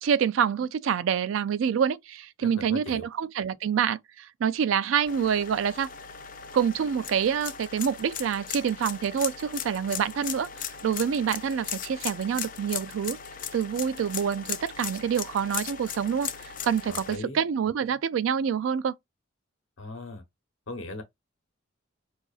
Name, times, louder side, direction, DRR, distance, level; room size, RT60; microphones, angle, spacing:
voice 1, 0.0-5.9 6.5-10.5 10.8-13.2 13.5-18.9, right 7 dB, 90° right, 0.3 m, -27 dB
voice 2, 2.4-3.1 16.9-17.4 19.8-20.2 20.7-21.0, left 2 dB, 90° left, 0.9 m, -38 dB
sound 1, 5.1-17.2, left 8 dB, 45° left, 0.4 m, -37 dB
4.8 x 2.4 x 2.3 m
head